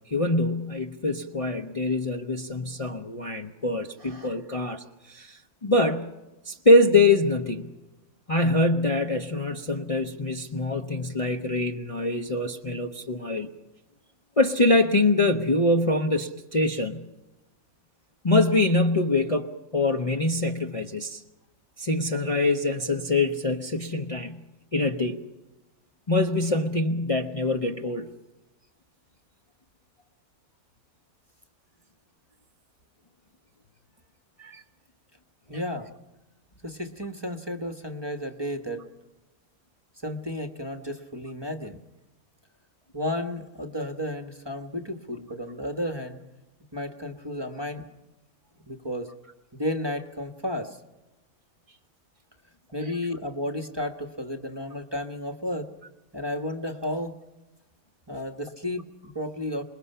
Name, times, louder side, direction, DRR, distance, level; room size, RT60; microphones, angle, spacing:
voice 1, 0.1-6.1 6.4-7.7 8.3-13.5 14.4-17.0 18.2-21.2 21.8-24.4 24.7-25.2 26.1-28.1 34.4-34.6, left 2 dB, 25° left, 2 dB, 0.9 m, -24 dB
voice 2, 35.5-35.9 36.6-38.8 40.0-41.8 42.9-46.2 46.7-47.8 48.7-49.1 49.5-50.8 52.7-55.7 56.1-57.2 58.1-59.6, left 1 dB, 20° right, 6 dB, 1.2 m, -32 dB
27.0 x 21.0 x 5.6 m, 1.0 s
omnidirectional pair, 1.6 m